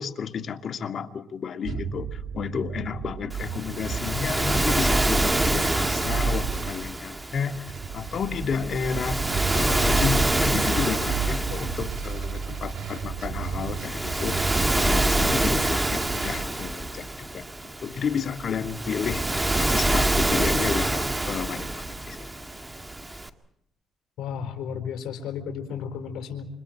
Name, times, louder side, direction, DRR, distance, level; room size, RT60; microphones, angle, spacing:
voice 1, 0.0-9.3 9.5-14.5 14.8-17.5 17.8-19.3 19.6-22.3, left 6 dB, 55° left, 8 dB, 2.0 m, -31 dB
sound 1, 1.6-6.7 7.7-15.0 15.7-16.4, right 7 dB, 65° right, 2.2 m, -34 dB
Waves surf, 3.3-23.3, right 1 dB, 15° right, 2.0 m, -26 dB
voice 2, 24.2-26.5, left 7 dB, 80° left, 4 dB, 4.5 m, -33 dB
29.0 x 26.5 x 4.6 m, 0.79 s
cardioid pair, 90°, 0 cm